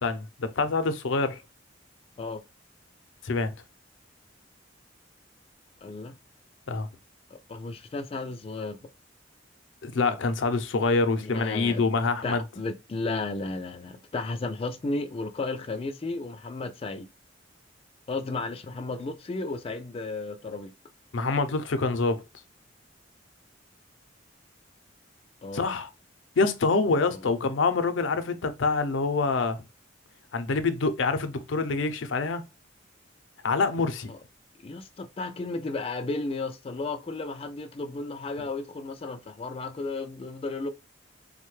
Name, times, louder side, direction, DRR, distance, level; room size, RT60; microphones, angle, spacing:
voice 1, 0.0-1.4 3.2-3.5 6.7-6.9 9.8-12.4 21.1-22.2 25.5-25.9 26.4-29.6 30.3-32.4 33.4-34.1, left 3 dB, 85° left, 0.5 m, -26 dB
voice 2, 5.8-6.2 7.5-8.8 11.2-11.8 12.2-17.1 18.1-20.7 25.4-25.7 27.1-27.2 34.1-34.2 34.6-40.7, left 3 dB, 30° left, 0.3 m, -33 dB
3.6 x 2.1 x 3.1 m
head